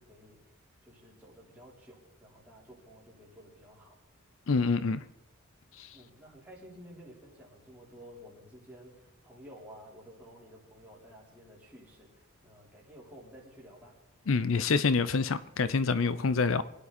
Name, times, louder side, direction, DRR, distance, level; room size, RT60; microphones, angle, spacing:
voice 1, 0.0-4.0 5.9-14.0, equal, 5° right, 4.0 m, -53 dB
voice 2, 4.5-5.0 5.8-5.9 14.3-16.6, left 4 dB, 65° left, 0.5 m, -27 dB
24.5 x 9.9 x 4.2 m
head